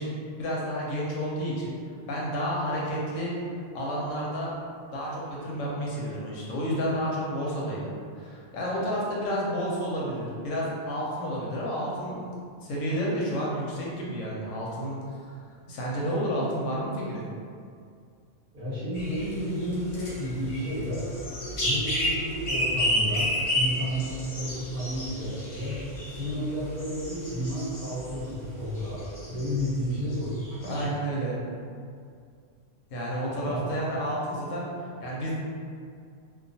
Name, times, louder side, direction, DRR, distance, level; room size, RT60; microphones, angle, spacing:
voice 1, 0.0-1.7 2.1-3.3 3.7-4.5 4.9-7.9 8.2-12.3 12.6-15.4 15.7-17.3 30.7-31.4 32.9-34.7 35.0-35.3, equal, 90° left, -5 dB, 1.0 m, -30 dB
voice 2, 18.5-21.0 21.6-25.8 26.1-30.4 30.6-30.9 33.4-33.7, equal, 50° right, -9 dB, 0.8 m, -32 dB
sound 1, 18.9-28.3 28.6-29.8 30.1-30.2 30.4-30.8, left 1 dB, 55° left, 0.3 m, -31 dB
2.3 x 2.3 x 2.6 m, 2.2 s
omnidirectional pair, 1.3 m